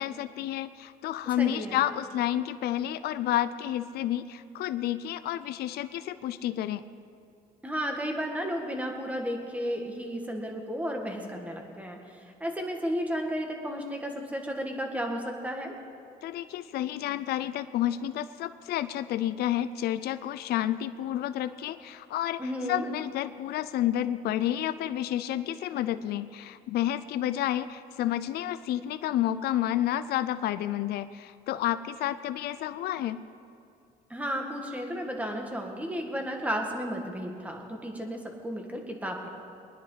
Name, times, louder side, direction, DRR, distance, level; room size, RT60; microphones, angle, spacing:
voice 1, 0.0-6.8 16.2-33.2, left 12 dB, 70° left, 12 dB, 0.5 m, -30 dB
voice 2, 1.4-1.8 7.6-15.7 22.4-22.9 34.1-39.3, equal, 10° right, 2 dB, 1.9 m, -33 dB
23.0 x 10.0 x 4.0 m, 2.4 s
cardioid pair, 110°, 17 cm